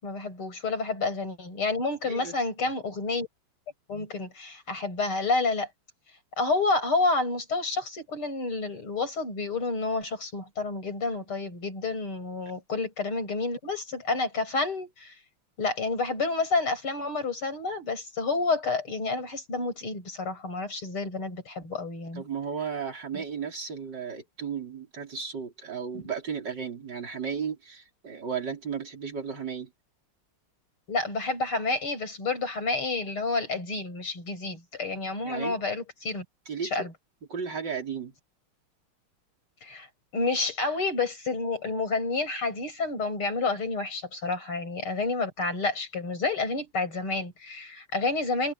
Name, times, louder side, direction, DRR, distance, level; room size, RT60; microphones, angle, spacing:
voice 1, 0.0-3.3 3.9-5.7 6.4-15.1 15.6-22.2 23.1-23.2 25.9-26.0 30.9-36.2 36.7-36.9 39.6-39.9 40.1-48.5, left 3 dB, 80° left, 7.7 m, -29 dB
voice 2, 2.1-2.4 22.1-29.7 35.2-35.6 36.5-36.8 37.3-38.1, right 6 dB, 50° right, 4.8 m, -34 dB
omnidirectional pair, 2.4 m